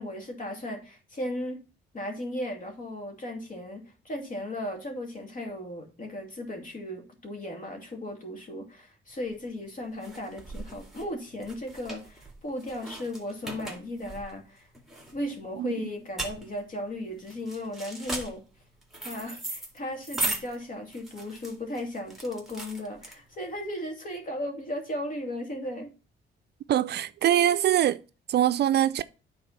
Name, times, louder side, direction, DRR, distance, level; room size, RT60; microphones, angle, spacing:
voice 1, 0.0-1.6 1.9-14.7 15.1-18.4 19.0-25.9, left 1 dB, 40° left, 2.5 m, -36 dB
sound 1, 9.2-23.6, right 2 dB, ahead, 2.2 m, -38 dB
voice 2, 26.7-28.0 28.3-29.0, right 11 dB, 55° right, 0.4 m, -23 dB
9.1 x 4.2 x 5.7 m
cardioid pair, 90°, 20 cm